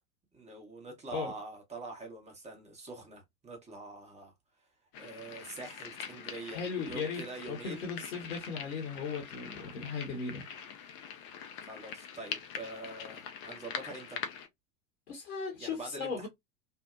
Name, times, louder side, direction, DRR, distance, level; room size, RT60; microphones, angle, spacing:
voice 1, 0.3-4.3 5.0-7.9 11.6-14.2 15.6-16.3, right 2 dB, 15° right, 1.0 m, -45 dB
sound 1, 4.9-14.5, left 7 dB, 30° left, 0.4 m, -44 dB
voice 2, 6.4-10.4 15.1-16.3, left 5 dB, 65° left, 0.9 m, -37 dB
2.7 x 2.1 x 2.3 m
figure-of-eight pair, 80°, 45 cm